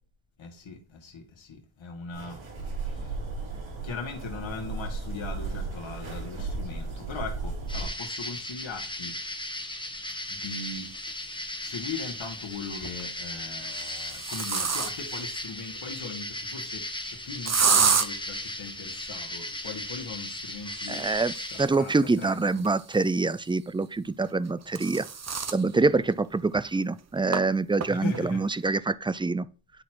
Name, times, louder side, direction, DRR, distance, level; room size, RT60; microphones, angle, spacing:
voice 1, 0.4-2.4 2.9-3.2 3.8-9.2 10.3-11.0 11.6-21.2 21.5-22.7 25.7-26.1 27.8-28.8, left 4 dB, 75° left, 2.1 m, -39 dB
sound 1, 2.1-7.9, right 3 dB, 85° right, 4.4 m, -35 dB
sound 2, 7.7-21.7, left 1 dB, 10° left, 1.3 m, -37 dB
sound 3, 11.1-11.2 12.6-13.0 13.6-15.2 17.5-18.1 20.7-23.3 24.3-25.6 26.1-26.2 26.5-26.6 27.3-27.4 27.8-28.2, right 6 dB, 35° right, 0.8 m, -29 dB
voice 2, 20.9-21.3 21.6-25.1 25.5-29.5, right 3 dB, 10° right, 0.3 m, -25 dB
11.0 x 4.2 x 4.7 m
wide cardioid pair, 90°, 46 cm